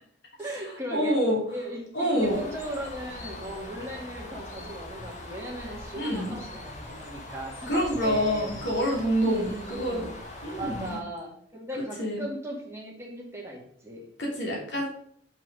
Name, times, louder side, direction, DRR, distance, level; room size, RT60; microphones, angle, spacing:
voice 1, 0.4-1.2 1.5-8.5 9.2-10.2 10.5-14.0 14.4-14.7, right 1 dB, 15° right, -2 dB, 2.1 m, -38 dB
voice 2, 0.9-1.4 1.9-2.4 6.0-6.4 7.7-10.1 10.4-11.0 12.0-12.2 14.2-14.9, equal, 70° left, -2 dB, 2.9 m, -27 dB
Bird, 2.2-11.0, left 1 dB, 40° left, 1.3 m, -41 dB
6.1 x 5.8 x 5.3 m, 0.65 s
head